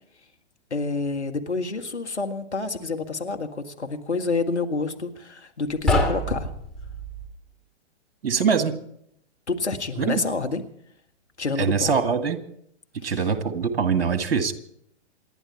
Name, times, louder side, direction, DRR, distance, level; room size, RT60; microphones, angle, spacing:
voice 1, 0.7-6.5 9.5-10.6 11.4-11.9 13.0-13.3, left 3 dB, 80° left, 5 dB, 1.8 m, -28 dB
sound 1, 5.8-7.3, left 1 dB, ahead, 2.8 m, -26 dB
voice 2, 8.2-8.8 10.0-10.2 11.6-12.4 13.0-14.5, right 6 dB, 55° right, 9 dB, 1.9 m, -23 dB
28.0 x 11.0 x 4.4 m, 0.72 s
figure-of-eight pair, 110°, 34 cm